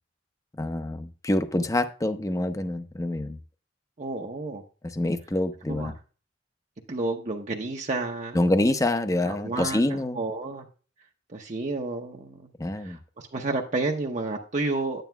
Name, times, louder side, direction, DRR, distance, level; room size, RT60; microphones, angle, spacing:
voice 1, 0.6-3.4 4.8-5.9 8.3-10.2 12.6-13.0, left 1 dB, 20° left, 0.7 m, -26 dB
voice 2, 4.0-4.6 5.7-5.9 6.9-8.4 9.2-10.7 11.3-12.5 12.8-15.1, right 3 dB, 40° right, 0.8 m, -31 dB
10.5 x 9.1 x 2.2 m
head